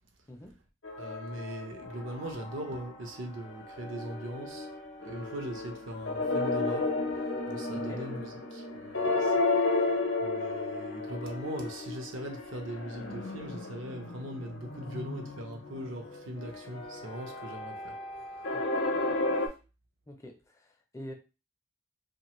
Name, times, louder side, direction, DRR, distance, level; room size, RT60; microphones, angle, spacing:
voice 1, 0.3-0.6 7.7-8.1 18.5-18.7 20.1-21.1, equal, 15° left, 0.4 m, -46 dB
sound 1, 0.8-3.1 3.4-19.5, left 2 dB, 65° left, 0.5 m, -33 dB
voice 2, 1.0-4.7 5.0-9.4 10.2-18.0, right 1 dB, 75° right, 0.7 m, -40 dB
2.7 x 2.2 x 3.0 m
head